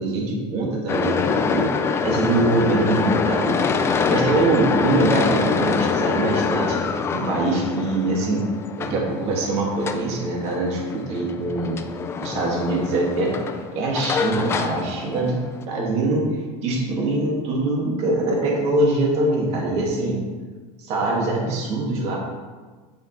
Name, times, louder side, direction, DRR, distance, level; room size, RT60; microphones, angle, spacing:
voice 1, 0.0-1.7 2.0-3.6 4.1-6.8 7.1-8.5 8.8-11.8 12.2-13.3 13.7-15.4 15.7-16.3 16.6-20.2 20.8-22.2, right 2 dB, 40° right, -2 dB, 2.1 m, -23 dB
sound 1, 0.9-15.6, left 5 dB, 15° left, 0.4 m, -25 dB
9.0 x 7.1 x 3.2 m, 1.4 s
cardioid pair, 165°, 16 cm